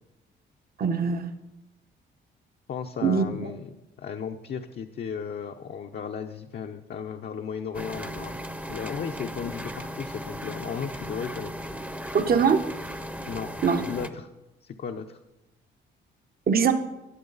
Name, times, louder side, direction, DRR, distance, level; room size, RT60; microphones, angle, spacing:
voice 1, 0.8-1.3 3.0-3.2 12.1-12.6 13.6-13.8 16.5-16.7, right 6 dB, 50° right, 7 dB, 1.1 m, -22 dB
voice 2, 2.7-8.3 8.7-11.5 13.3-13.5 13.8-14.3 14.6-15.2, left 7 dB, 55° left, 3 dB, 0.8 m, -35 dB
sound 1, 7.7-14.1, equal, 5° right, 0.8 m, -37 dB
19.5 x 7.5 x 4.0 m, 0.99 s
cardioid pair, 90°, 20 cm